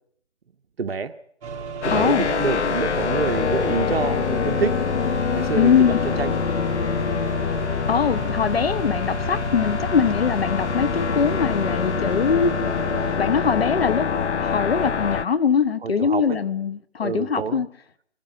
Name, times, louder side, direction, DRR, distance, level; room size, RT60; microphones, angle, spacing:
voice 1, 0.8-1.1 1.8-4.8 5.3-6.4 15.8-16.4 17.0-17.6, right 5 dB, 60° right, 1.3 m, -27 dB
sound 1, 1.4-13.2, right 5 dB, 30° right, 4.3 m, -34 dB
sound 2, 1.8-15.2, left 7 dB, 75° left, 0.9 m, -25 dB
voice 2, 1.9-2.2 5.6-6.0 7.9-12.5 13.2-14.1 14.4-17.7, left 6 dB, 60° left, 1.5 m, -22 dB
25.0 x 13.5 x 9.3 m
hypercardioid pair, 165°, 35 cm